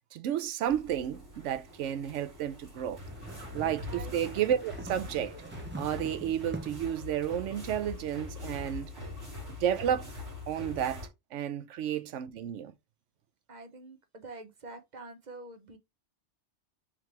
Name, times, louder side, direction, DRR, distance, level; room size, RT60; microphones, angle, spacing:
voice 1, 0.1-3.0 3.5-5.3 5.8-8.9 9.6-10.2 10.5-12.7, right 10 dB, 85° right, 0.9 m, -32 dB
sound 1, 0.7-11.1, left 2 dB, 65° right, 2.0 m, -43 dB
sound 2, 2.9-7.0, right 3 dB, 15° right, 0.4 m, -44 dB
voice 2, 3.9-4.2 9.3-9.5 13.5-15.8, right 2 dB, 40° right, 0.9 m, -46 dB
3.7 x 3.1 x 4.6 m
omnidirectional pair, 1.2 m